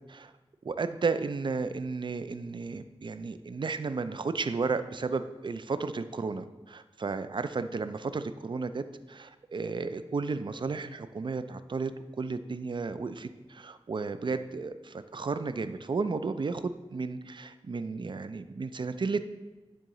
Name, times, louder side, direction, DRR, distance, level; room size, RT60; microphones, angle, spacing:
voice 1, 0.6-11.9 12.2-19.2, right 4 dB, 50° right, 11 dB, 0.4 m, -33 dB
10.0 x 3.7 x 3.0 m, 1.2 s
cardioid pair, 50°, 11 cm